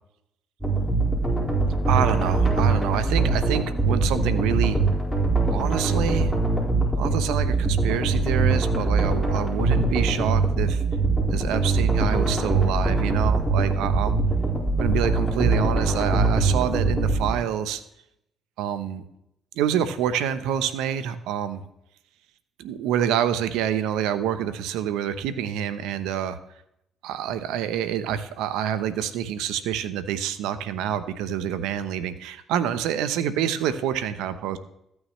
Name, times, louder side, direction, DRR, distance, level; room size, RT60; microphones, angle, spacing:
sound 1, 0.6-17.4, right 3 dB, ahead, 4.5 m, -22 dB
voice 1, 1.9-4.8 5.5-6.3 7.0-10.8 11.3-14.2 14.8-17.8 18.6-19.0 19.5-21.6 22.6-26.4 27.0-34.6, right 9 dB, 85° right, 12 dB, 0.7 m, -27 dB
14.0 x 9.5 x 3.1 m, 0.78 s
supercardioid pair, 70°, 0 cm